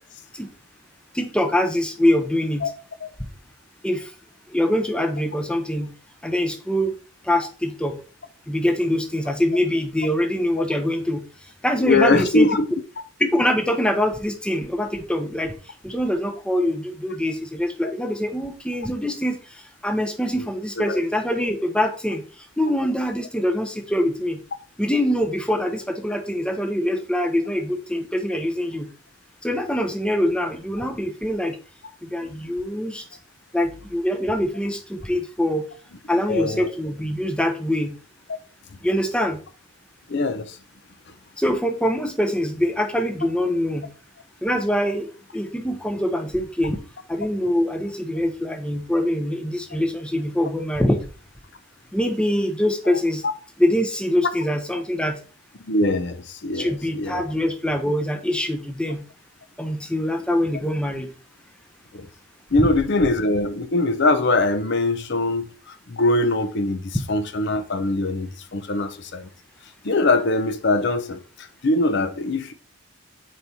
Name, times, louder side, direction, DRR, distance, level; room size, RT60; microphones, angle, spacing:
voice 1, 1.1-2.7 3.8-4.1 4.5-5.9 6.2-6.9 7.2-8.0 8.5-11.2 11.6-12.5 13.2-15.5 15.8-19.4 19.8-22.2 22.6-24.4 24.8-28.9 29.4-31.6 32.0-33.0 33.5-35.6 36.1-38.0 38.8-39.4 41.4-43.9 44.4-46.8 47.1-51.0 51.9-53.2 53.6-55.2 56.5-59.0 59.6-61.1 62.6-62.7, left 1 dB, 5° left, 0.7 m, -24 dB
voice 2, 11.8-12.7 20.8-21.0 32.2-32.3 36.3-36.7 40.1-40.6 53.2-53.3 55.7-57.2 61.9-62.1 62.5-65.5 65.9-69.3 69.8-72.5, left 2 dB, 55° left, 0.7 m, -22 dB
4.6 x 4.1 x 5.4 m
head